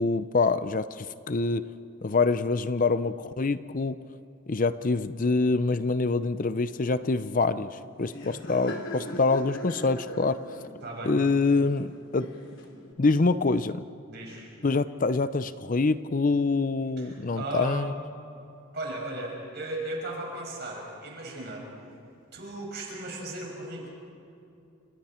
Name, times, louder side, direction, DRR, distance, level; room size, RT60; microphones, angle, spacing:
voice 1, 0.0-1.7 2.0-4.0 4.5-10.6 11.0-12.3 13.0-13.8 14.6-17.9, left 3 dB, 40° left, 13 dB, 0.5 m, -25 dB
Laughter, 6.6-12.9, left 1 dB, 60° left, 3.6 m, -42 dB
voice 2, 10.8-11.1 14.1-14.5 17.0-17.8 18.7-21.7 22.3-23.9, right 2 dB, 50° right, -1 dB, 6.0 m, -36 dB
30.0 x 28.0 x 4.4 m, 2.7 s
head